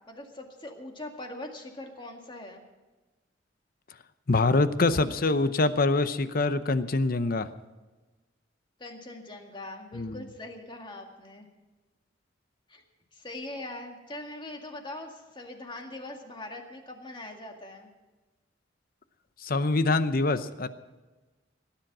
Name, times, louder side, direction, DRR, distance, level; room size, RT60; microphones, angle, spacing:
voice 1, 0.1-2.6 8.8-11.5 12.7-12.8 13.1-17.9, left 1 dB, 25° left, 3 dB, 2.0 m, -42 dB
voice 2, 4.3-7.5 9.9-10.2 19.4-20.7, left 3 dB, 50° left, 12 dB, 0.8 m, -25 dB
17.5 x 10.5 x 6.1 m, 1.2 s
head